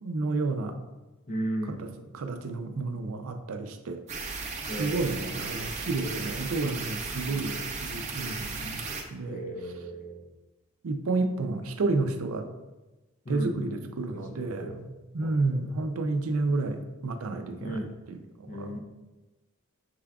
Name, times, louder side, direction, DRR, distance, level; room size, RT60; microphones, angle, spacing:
voice 1, 0.0-0.8 1.7-1.8 2.1-4.0 4.8-9.4 10.8-12.5 13.3-17.8 18.1-18.8, right 3 dB, 80° right, 7 dB, 0.5 m, -31 dB
voice 2, 1.3-2.0 4.7-5.7 6.0-6.1 7.3-7.7 9.3-10.3 13.2-14.8 15.2-15.6 17.6-17.9 18.5-18.8, right 1 dB, 40° left, 2 dB, 0.6 m, -37 dB
sound 1, 4.1-9.0, right 4 dB, 35° right, 0.6 m, -35 dB
6.7 x 3.5 x 2.3 m, 1.1 s
head